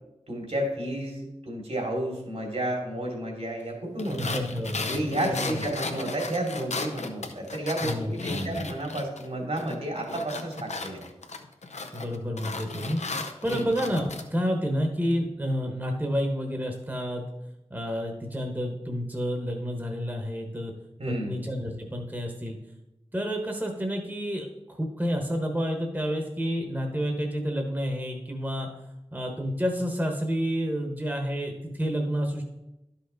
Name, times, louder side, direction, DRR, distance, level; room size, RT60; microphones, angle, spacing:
voice 1, 0.3-4.4 4.9-11.0 13.5-13.7 21.0-21.4, right 1 dB, 70° right, 0 dB, 2.7 m, -31 dB
sound 1, 4.0-9.3 9.6-14.2, left 3 dB, 85° left, 0.7 m, -35 dB
voice 2, 4.2-5.6 7.8-8.7 11.9-17.3 17.7-20.7 21.1-22.6 23.1-28.7 29.1-32.4, equal, 15° right, 2 dB, 1.1 m, -30 dB
11.0 x 5.7 x 3.9 m, 0.93 s
wide cardioid pair, 60°, 11 cm